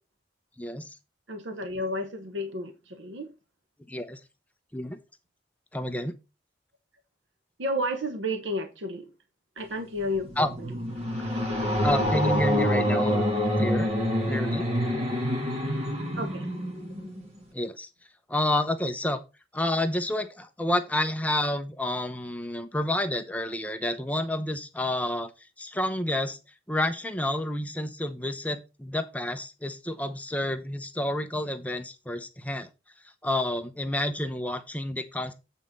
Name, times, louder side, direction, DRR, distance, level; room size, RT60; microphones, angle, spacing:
voice 1, 0.6-0.9 3.9-4.2 4.7-5.0 5.7-6.1 10.4-10.5 11.8-13.2 13.6-13.9 14.3-14.6 17.5-17.9 18.3-19.2 19.5-25.3 25.6-26.4 26.7-32.7 33.2-35.3, left 1 dB, 10° left, 0.6 m, -29 dB
voice 2, 1.3-2.7 3.0-3.3 7.6-9.0 9.6-10.3 16.2-16.5, equal, 80° right, 1.0 m, -31 dB
sound 1, 10.0-17.4, equal, 30° right, 2.0 m, -27 dB
8.3 x 4.3 x 5.2 m
head